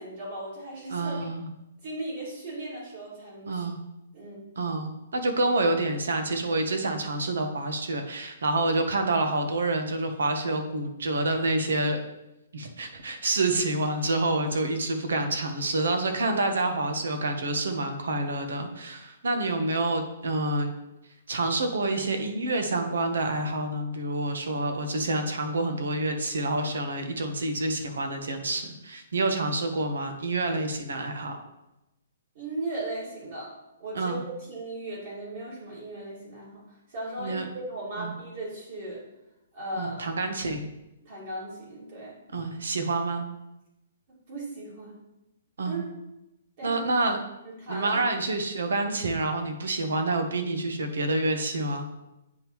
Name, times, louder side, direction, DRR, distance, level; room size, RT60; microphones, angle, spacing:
voice 1, 0.0-1.2 1.8-3.7 4.1-4.5 32.3-33.5 33.8-36.6 36.9-39.0 39.5-40.0 41.0-42.2 44.1-45.0 45.7-45.9 46.6-46.8 47.4-48.0, right 2 dB, 45° right, -6 dB, 2.2 m, -37 dB
voice 2, 0.9-1.5 3.5-3.8 4.6-12.0 12.5-20.7 21.3-31.4 33.9-34.2 37.2-37.5 38.0-38.1 39.8-40.7 42.3-43.3 45.6-45.8 46.6-47.2 47.7-51.8, right 2 dB, 90° right, 5 dB, 1.0 m, -28 dB
9.8 x 3.6 x 3.0 m, 0.93 s
hypercardioid pair, 170°, 0 cm